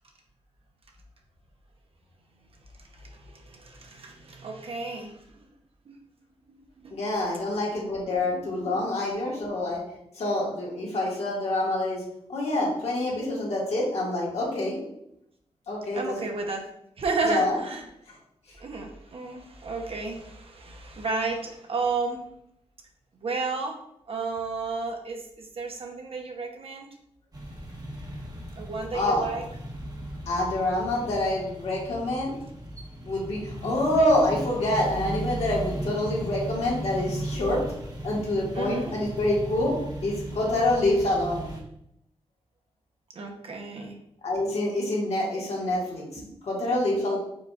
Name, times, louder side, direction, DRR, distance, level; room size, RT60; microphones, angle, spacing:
voice 1, 2.9-5.2 5.9-6.0 6.5-6.9 8.3-8.7 15.9-16.7 17.0-17.8 18.6-22.2 23.1-23.8 24.1-26.9 28.4-29.4 38.5-38.9 43.1-44.0 46.2-46.4, right 3 dB, 60° right, 2 dB, 0.9 m, -32 dB
voice 2, 6.9-9.8 10.1-12.0 12.3-14.8 15.7-16.1 17.2-17.6 18.1-18.2 28.9-29.2 30.2-32.3 33.0-37.6 38.0-39.7 40.0-41.5 44.2-47.2, left 1 dB, 70° left, -4 dB, 1.7 m, -26 dB
sound 1, 27.3-41.6, right 1 dB, 35° right, 1.2 m, -36 dB
4.9 x 3.9 x 2.4 m, 0.77 s
cardioid pair, 65°, 11 cm